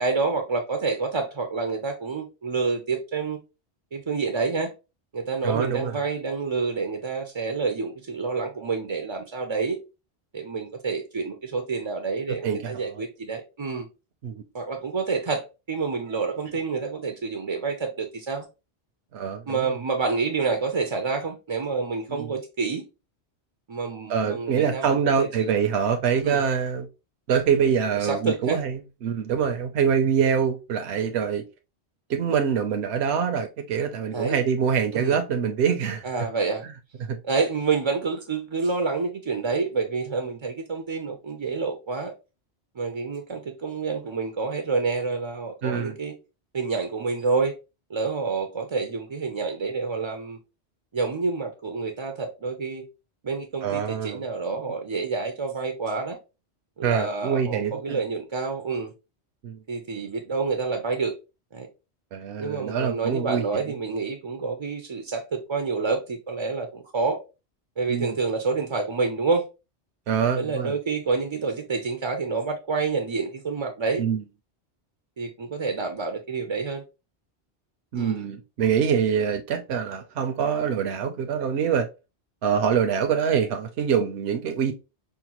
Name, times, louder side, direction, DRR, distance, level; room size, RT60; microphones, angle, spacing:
voice 1, 0.0-3.4 3.9-4.7 5.1-9.8 10.3-13.9 14.5-18.5 19.5-22.8 23.7-25.5 26.2-26.4 28.0-28.6 34.1-34.4 34.9-35.2 36.0-36.6 37.2-42.1 42.8-46.1 46.5-47.5 47.9-50.4 50.9-52.8 53.2-56.2 56.8-58.9 59.7-61.1 61.5-61.7 62.4-67.2 67.8-69.4 70.4-74.0 75.2-76.8 77.9-78.3, right 4 dB, 45° right, 0.4 m, -28 dB
voice 2, 5.4-5.9 12.4-13.0 14.2-14.4 19.1-19.8 22.1-22.3 24.1-26.9 27.3-31.4 32.1-36.1 37.1-37.2 45.6-46.0 53.6-54.3 56.8-58.0 59.4-59.6 62.1-63.6 67.9-68.1 70.1-70.7 74.0-74.2 77.9-81.9 82.4-84.7, right 7 dB, 75° right, 0.8 m, -25 dB
5.6 x 2.1 x 2.9 m
omnidirectional pair, 1.1 m